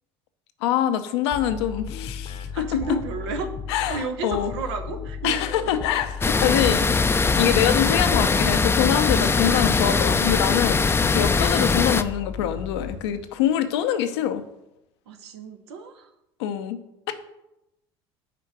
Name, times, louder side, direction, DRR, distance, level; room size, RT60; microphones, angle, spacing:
voice 1, 0.6-2.6 3.7-4.5 5.2-5.4 5.7-6.9 7.4-10.9 11.1-14.4 16.4-16.8, left 10 dB, 85° left, 9 dB, 0.7 m, -24 dB
sound 1, 1.3-13.5, left 6 dB, 45° left, 0.8 m, -35 dB
voice 2, 2.5-5.5 15.1-16.1, right 4 dB, 85° right, 6 dB, 0.9 m, -32 dB
sound 2, 6.2-12.0, left 4 dB, 15° left, 0.4 m, -21 dB
6.0 x 4.5 x 6.0 m, 0.88 s
hypercardioid pair, 75°, 14 cm